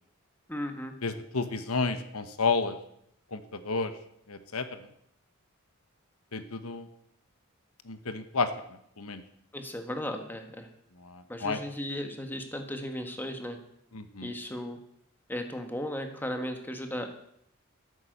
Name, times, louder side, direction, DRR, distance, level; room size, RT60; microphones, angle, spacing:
voice 1, 0.5-0.9 9.5-10.7 11.3-13.6 14.2-14.8 15.3-17.1, left 1 dB, 10° left, 4 dB, 1.7 m, -36 dB
voice 2, 1.0-2.7 3.3-3.9 4.3-4.6 6.3-6.9 7.9-8.5 9.0-9.2 11.0-11.6 13.9-14.3, left 4 dB, 80° left, 10 dB, 1.2 m, -31 dB
13.5 x 11.5 x 6.8 m, 0.72 s
head